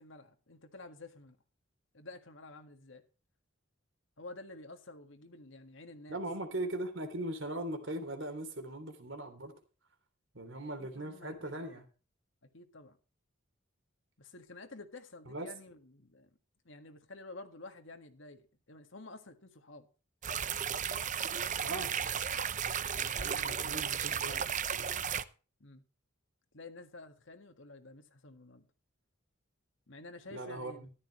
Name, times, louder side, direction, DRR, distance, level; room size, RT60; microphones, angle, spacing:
voice 1, 0.0-1.4 1.9-3.0 4.2-6.2 10.8-11.8 12.5-13.0 14.2-16.3 16.7-19.9 21.6-22.0 22.3-22.5 22.9-23.9 25.6-25.8 26.5-28.7 29.9-30.9, left 2 dB, 65° left, 1.8 m, -51 dB
voice 2, 6.1-9.5 10.3-11.8 15.3-15.5 21.6-21.9 23.1-24.9 30.3-30.9, right 1 dB, 65° right, 3.2 m, -40 dB
sound 1, 20.2-25.2, right 8 dB, 35° right, 0.6 m, -34 dB
14.0 x 12.0 x 3.1 m
head